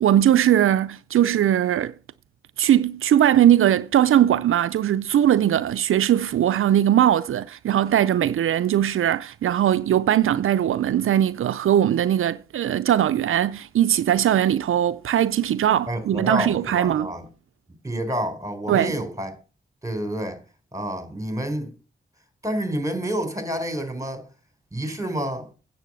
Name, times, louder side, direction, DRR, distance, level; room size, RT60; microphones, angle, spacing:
voice 1, 0.0-1.9 2.6-17.1 18.7-19.0, right 11 dB, 90° right, 0.4 m, -20 dB
voice 2, 15.9-17.3 17.8-19.3 19.8-20.4 20.7-21.7 22.4-24.2 24.7-25.5, right 1 dB, 15° right, 4.1 m, -28 dB
9.1 x 7.7 x 6.2 m
cardioid pair, 45°, 21 cm